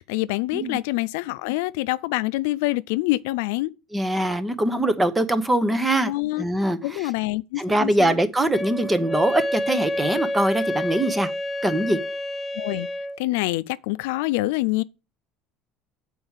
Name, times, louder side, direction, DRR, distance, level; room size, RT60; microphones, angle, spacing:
voice 1, 0.0-3.7 6.0-6.4 6.8-8.2 12.6-12.9 13.2-14.8, left 19 dB, 90° left, 0.4 m, -26 dB
voice 2, 3.9-6.1 6.4-7.1 7.6-11.3 11.6-12.0, right 1 dB, 10° right, 0.9 m, -22 dB
Wind instrument woodwind instrument, 8.5-13.2, left 1 dB, 20° left, 0.5 m, -28 dB
7.9 x 4.6 x 7.2 m
cardioid pair, 135°, 0 cm